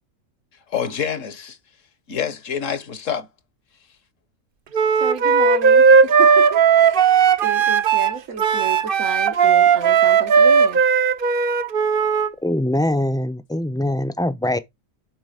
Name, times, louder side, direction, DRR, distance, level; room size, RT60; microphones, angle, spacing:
voice 1, 0.7-1.6 2.1-3.3, left 7 dB, 70° left, 1.5 m, -26 dB
Wind instrument woodwind instrument, 4.7-12.3, right 6 dB, 50° right, 0.8 m, -16 dB
voice 2, 4.9-10.8, right 5 dB, 75° right, 1.5 m, -32 dB
voice 3, 12.4-14.6, left 1 dB, 5° left, 0.5 m, -22 dB
7.7 x 5.0 x 5.0 m
omnidirectional pair, 1.4 m